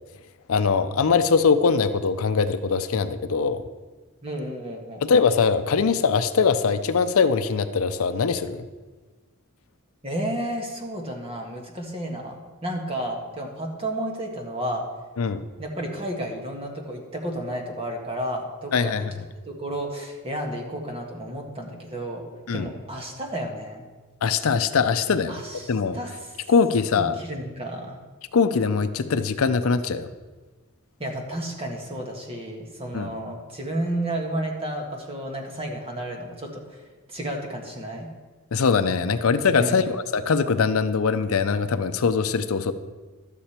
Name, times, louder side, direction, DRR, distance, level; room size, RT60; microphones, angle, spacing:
voice 1, 0.5-3.6 5.1-8.7 15.2-15.5 18.7-19.1 22.5-22.7 24.2-25.4 25.7-26.0 26.5-27.1 28.3-30.1 32.9-33.1 38.5-42.7, left 5 dB, 70° left, 11 dB, 0.5 m, -22 dB
voice 2, 4.2-5.0 10.0-14.8 15.6-18.9 19.4-22.3 22.5-23.8 25.3-26.5 26.9-28.0 31.0-38.1 39.6-39.9, right 1 dB, 25° right, 1 dB, 1.5 m, -32 dB
12.0 x 8.3 x 4.4 m, 1.3 s
head